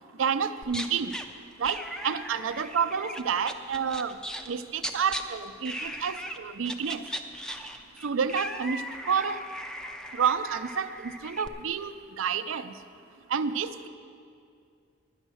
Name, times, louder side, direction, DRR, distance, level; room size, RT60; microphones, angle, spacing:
voice 1, 0.2-1.1 1.6-4.2 4.5-7.0 8.0-8.8 9.1-9.4 10.1-12.7 13.3-13.9, right 6 dB, 85° right, 11 dB, 0.5 m, -29 dB
sound 1, 0.6-1.3 1.6-4.5 4.8-5.2 5.7-6.4 6.6-11.5, equal, 5° left, 0.5 m, -38 dB
11.0 x 9.9 x 6.3 m, 2.4 s
head